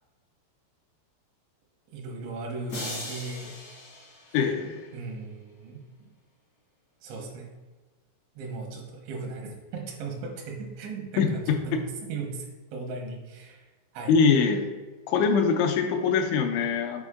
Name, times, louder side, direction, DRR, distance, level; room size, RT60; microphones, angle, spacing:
voice 1, 1.9-3.6 4.9-6.1 7.0-7.5 8.4-12.5 12.7-14.1, right 4 dB, 85° right, 1 dB, 3.5 m, -37 dB
sound 1, 2.7-5.0, left 1 dB, 65° left, 0.8 m, -39 dB
voice 2, 4.3-4.8 11.2-11.6 14.1-14.6 15.1-17.0, left 5 dB, 90° left, 5 dB, 3.0 m, -23 dB
7.9 x 4.5 x 3.6 m, 1.3 s
omnidirectional pair, 5.1 m